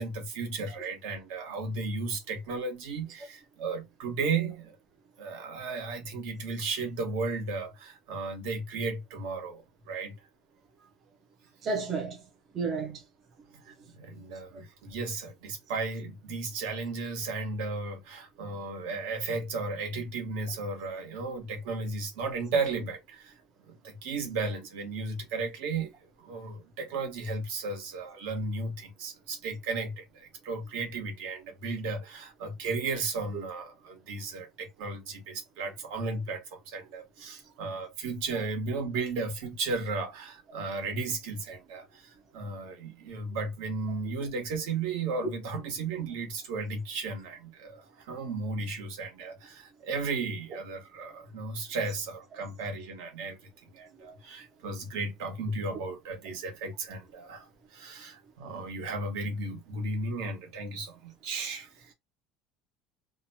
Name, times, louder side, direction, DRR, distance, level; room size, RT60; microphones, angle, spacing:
voice 1, 0.0-4.7 5.2-10.1 13.6-23.4 23.7-25.9 26.2-61.9, right 3 dB, 65° right, 1.2 m, -35 dB
voice 2, 11.6-12.2 12.5-13.0, right 4 dB, 25° right, 0.5 m, -31 dB
2.8 x 2.1 x 2.6 m
cardioid pair, 180°, 0 cm